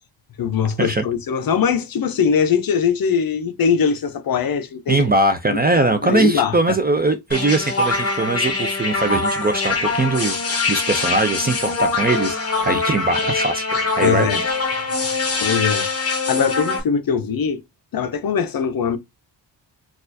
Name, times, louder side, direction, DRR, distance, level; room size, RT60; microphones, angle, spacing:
voice 1, 0.4-5.0 5.5-6.8 14.0-14.4 15.4-17.6 17.9-19.0, left 6 dB, 50° left, 0.6 m, -21 dB
voice 2, 4.9-14.6, right 2 dB, 25° right, 0.3 m, -21 dB
sound 1, 7.3-16.8, left 3 dB, 30° left, 1.0 m, -23 dB
4.1 x 2.4 x 2.6 m
wide cardioid pair, 135°, 45 cm